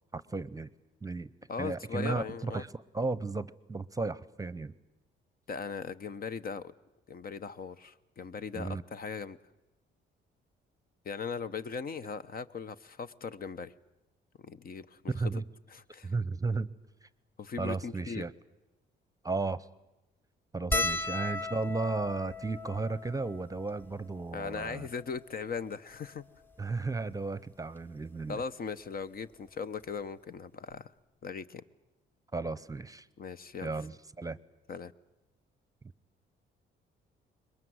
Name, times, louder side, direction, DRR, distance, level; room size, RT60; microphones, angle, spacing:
voice 1, 0.1-0.7 1.0-1.3 1.6-4.7 8.5-8.8 15.1-15.4 16.0-16.7 17.0-17.1 17.6-18.3 19.2-19.7 20.5-24.9 26.6-28.4 32.3-33.1 33.6-34.4, right 3 dB, 15° right, 0.8 m, -34 dB
voice 2, 1.5-2.6 5.5-6.7 7.1-9.4 11.0-13.7 14.4-15.1 15.7-16.1 17.4-18.2 20.7-20.9 24.3-26.2 28.3-30.9 31.2-31.6 33.2-33.7 34.7-34.9, left 5 dB, 45° left, 0.9 m, -39 dB
sound 1, 20.7-25.3 26.1-26.2 26.4-26.6 27.8-28.0 29.5-29.6 29.8-30.0, left 1 dB, 10° left, 0.8 m, -36 dB
22.0 x 20.5 x 9.4 m
cardioid pair, 90°, 20 cm